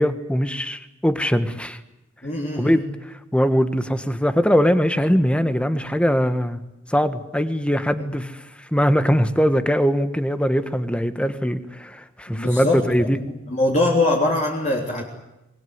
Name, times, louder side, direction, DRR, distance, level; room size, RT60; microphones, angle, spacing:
voice 1, 0.0-1.8 2.6-6.6 6.9-13.2, equal, 5° left, 11 dB, 1.4 m, -21 dB
voice 2, 2.2-2.8 7.9-8.1 12.3-12.8 13.5-15.0, left 2 dB, 35° left, -1 dB, 3.4 m, -22 dB
25.5 x 20.5 x 9.6 m, 0.96 s
head